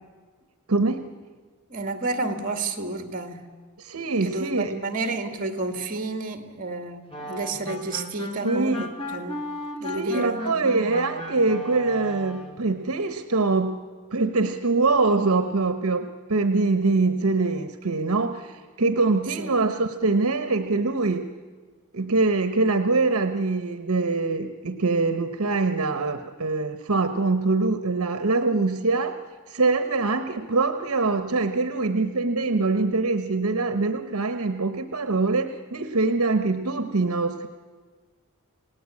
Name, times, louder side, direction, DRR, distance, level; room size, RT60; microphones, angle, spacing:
voice 1, 0.7-1.1 3.8-4.7 8.4-8.8 9.9-13.8 14.1-21.3 21.9-29.2 29.5-37.5, right 3 dB, 70° right, 9 dB, 1.0 m, -24 dB
voice 2, 1.7-3.4 4.2-9.4 9.8-10.7 19.4-19.6, right 3 dB, 40° right, 7 dB, 2.1 m, -30 dB
sound 1, 7.1-12.6, equal, 25° left, 2.5 m, -35 dB
28.5 x 18.0 x 8.5 m, 1.4 s
head